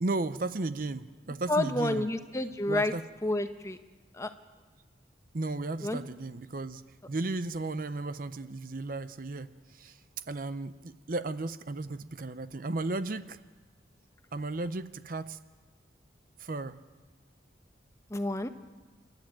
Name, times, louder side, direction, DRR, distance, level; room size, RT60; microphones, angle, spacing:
voice 1, 0.0-2.2 2.7-3.1 5.3-6.8 7.1-10.0 10.3-13.4 14.3-15.4 16.4-16.8, right 2 dB, 45° right, 13 dB, 0.6 m, -34 dB
voice 2, 1.5-2.9 3.2-3.8 4.1-4.3 5.8-6.0 18.1-18.5, left 1 dB, 15° left, 8 dB, 0.9 m, -29 dB
27.5 x 12.0 x 8.9 m, 1.4 s
head